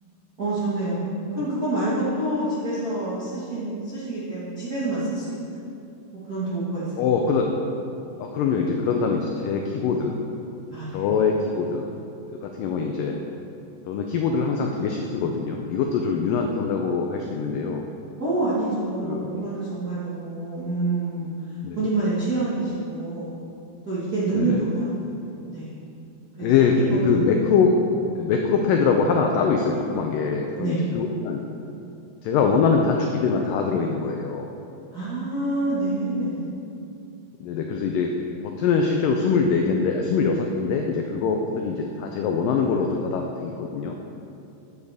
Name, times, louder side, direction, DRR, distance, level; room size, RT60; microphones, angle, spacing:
voice 1, 0.4-5.4 6.3-6.9 10.7-11.0 18.2-21.3 21.7-23.4 23.8-25.7 26.4-26.5 26.9-27.0 30.6-30.8 34.9-36.5, right 2 dB, 65° right, -10 dB, 0.9 m, -27 dB
voice 2, 7.0-7.5 8.2-10.1 10.9-11.8 12.4-13.2 13.9-17.8 19.0-19.3 21.6-21.8 24.3-24.6 26.4-27.8 28.2-31.4 32.2-34.5 37.4-38.1 38.6-44.0, left 5 dB, 90° left, 2 dB, 1.9 m, -23 dB
9.6 x 8.0 x 3.5 m, 2.7 s
omnidirectional pair, 4.5 m